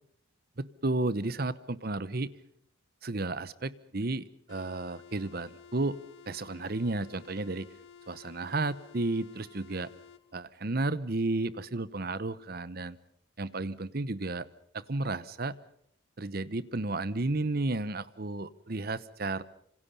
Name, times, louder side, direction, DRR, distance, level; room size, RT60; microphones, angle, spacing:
voice 1, 0.6-2.3 3.0-6.0 6.3-7.7 8.1-9.9 10.3-13.0 13.4-14.5 14.7-15.6 16.2-19.4, right 2 dB, 50° right, 17 dB, 0.9 m, -32 dB
sound 1, 4.5-10.2, left 7 dB, 65° left, 1.7 m, -53 dB
27.0 x 25.5 x 5.5 m, 0.69 s
head